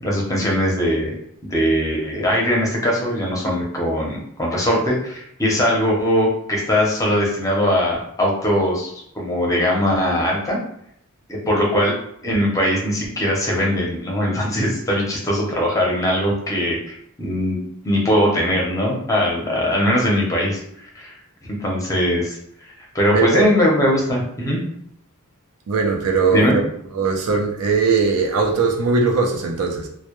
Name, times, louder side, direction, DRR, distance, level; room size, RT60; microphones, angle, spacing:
voice 1, 0.0-1.1 1.4-10.6 11.3-11.9 12.2-17.6 17.8-20.6 21.0-21.1 21.4-22.4 22.9-24.6 26.3-26.6, equal, 15° left, -3 dB, 0.6 m, -20 dB
voice 2, 23.1-23.5 25.7-26.6 26.9-29.9, right 4 dB, 85° right, 1 dB, 0.5 m, -19 dB
2.1 x 2.0 x 2.9 m, 0.72 s
head